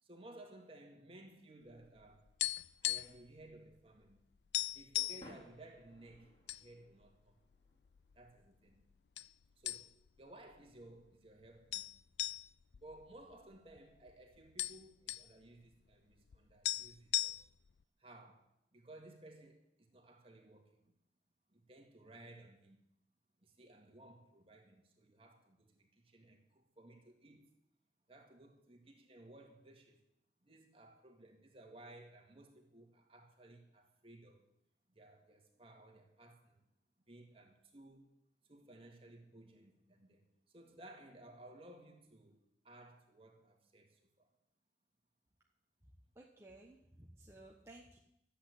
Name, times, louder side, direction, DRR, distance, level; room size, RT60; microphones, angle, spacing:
voice 1, 0.0-2.3 2.8-4.2 4.7-7.4 8.1-8.8 9.6-11.9 12.8-17.4 18.0-20.9 21.5-22.8 23.4-27.5 28.1-30.0 30.4-34.5 34.9-36.6 37.1-38.1 38.4-42.4 42.6-44.3, right 1 dB, 30° right, 2.2 m, -58 dB
sound 1, 1.3-12.6, equal, 30° left, 3.6 m, -65 dB
sound 2, 1.8-3.3 3.5-3.7 4.1-4.2 4.5-5.3 6.0-6.6 7.0-7.1 7.8-8.5 9.2-9.3 9.7-10.2 10.5-10.6 11.7-13.8 14.1-14.2 14.4-15.3 16.3-16.4 16.6-17.7, left 16 dB, 70° left, 0.5 m, -38 dB
voice 2, 46.1-48.0, right 1 dB, 15° right, 1.2 m, -57 dB
13.5 x 8.4 x 8.4 m
head